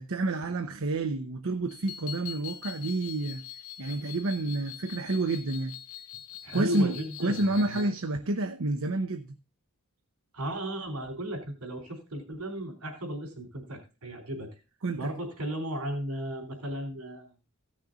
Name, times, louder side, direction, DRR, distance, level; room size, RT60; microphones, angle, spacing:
voice 1, 0.0-3.4 3.8-5.7 6.5-9.3 14.8-15.1, right 2 dB, 65° right, 0.8 m, -29 dB
sound 1, 1.7-7.9, left 11 dB, 70° left, 0.9 m, -43 dB
voice 2, 6.4-7.9 10.3-14.5 15.0-17.3, equal, 80° right, 3.6 m, -35 dB
15.5 x 6.5 x 3.8 m
head